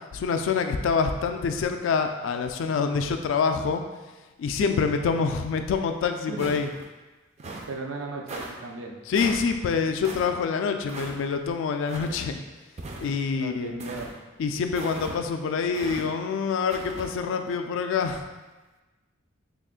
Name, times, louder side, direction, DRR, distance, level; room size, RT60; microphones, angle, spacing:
voice 1, 0.1-3.8 4.4-6.7 9.1-12.4 13.0-13.7 14.4-18.3, left 5 dB, 70° left, 6 dB, 0.3 m, -26 dB
sound 1, 6.4-6.9 7.4-7.7 8.3-8.5 9.1-9.5 10.0-10.3 10.9-11.2 11.9-12.2 12.8-13.3 13.8-14.1 14.7-15.2 15.7-16.0 16.7-17.1, right 2 dB, 35° right, 0.4 m, -38 dB
voice 2, 7.7-9.0 13.3-14.1, right 3 dB, 90° right, 2 dB, 0.5 m, -36 dB
3.4 x 2.4 x 3.6 m, 1.2 s
head